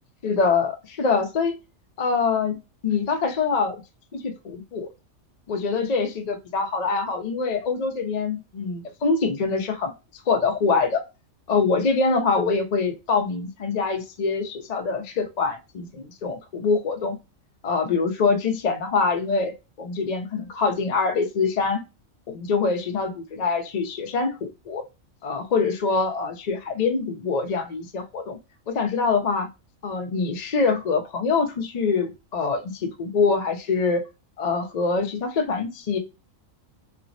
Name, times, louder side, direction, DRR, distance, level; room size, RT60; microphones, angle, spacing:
voice 1, 0.2-1.5 2.0-3.8 4.1-4.9 5.5-9.9 10.3-11.0 11.5-17.2 17.6-21.8 22.3-24.8 25.2-28.4 28.7-29.5 29.8-34.0 34.4-36.0, left 4 dB, 55° left, 4 dB, 0.4 m, -24 dB
3.2 x 2.0 x 2.5 m, 0.26 s
omnidirectional pair, 1.4 m